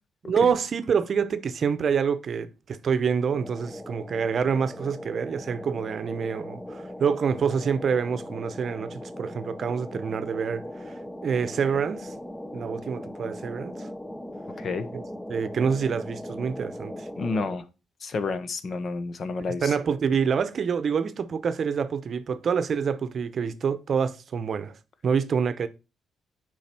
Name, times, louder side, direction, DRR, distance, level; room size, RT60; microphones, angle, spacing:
voice 1, 0.2-12.1 12.5-13.9 14.9-15.0 15.3-17.1 19.6-24.8 25.0-25.7, right 6 dB, 50° right, 0.7 m, -27 dB
sound 1, 3.3-17.6, left 1 dB, 10° left, 0.6 m, -39 dB
voice 2, 17.2-17.6 18.0-19.7, left 4 dB, 50° left, 1.0 m, -30 dB
7.4 x 4.9 x 4.4 m
cardioid pair, 90°, 0 cm